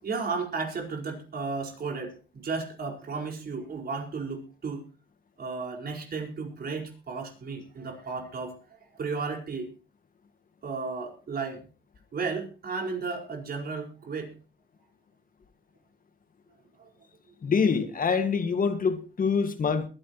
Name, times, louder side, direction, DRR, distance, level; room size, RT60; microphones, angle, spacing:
voice 1, 0.0-4.8 5.4-8.6 8.9-9.7 10.6-11.7 12.1-14.4 16.8-16.9 17.3-17.4, right 4 dB, 50° right, 4.7 m, -34 dB
voice 2, 17.4-19.9, left 5 dB, 45° left, 1.8 m, -25 dB
21.5 x 11.0 x 3.0 m
cardioid pair, 90°, 20 cm